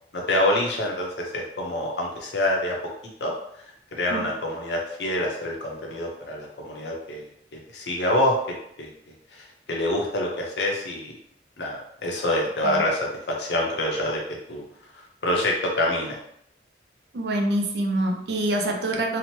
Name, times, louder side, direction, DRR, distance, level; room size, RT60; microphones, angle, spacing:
voice 1, 0.1-2.8 3.2-3.3 3.9-7.3 7.7-8.4 8.8-8.9 9.3-11.1 11.6-14.2 14.5-14.6 15.2-16.2, left 1 dB, 75° left, -1 dB, 0.7 m, -26 dB
voice 2, 17.1-19.2, right 1 dB, 65° right, 2 dB, 0.4 m, -25 dB
2.8 x 2.1 x 3.0 m, 0.70 s
head